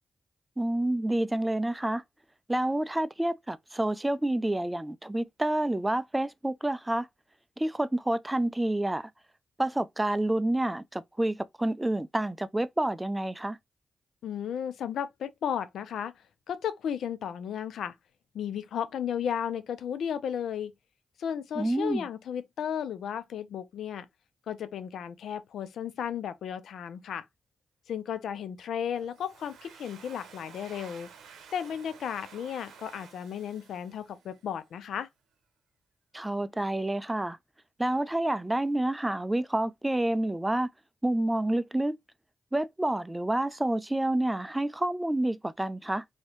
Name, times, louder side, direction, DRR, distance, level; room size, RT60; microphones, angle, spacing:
voice 1, 0.6-2.0 2.5-7.1 7.6-9.1 9.6-13.6 21.6-22.1 36.1-37.4 37.8-40.7 41.0-42.0 42.5-46.0, right 1 dB, 15° right, 0.4 m, -28 dB
voice 2, 14.2-16.1 16.5-17.9 18.3-20.7 21.2-24.1 24.5-27.3 27.9-31.1 31.5-35.1, left 8 dB, 80° left, 0.4 m, -34 dB
Domestic sounds home sounds, 29.0-34.6, right 6 dB, 85° right, 0.7 m, -52 dB
2.9 x 2.7 x 3.0 m
supercardioid pair, 45°, 0 cm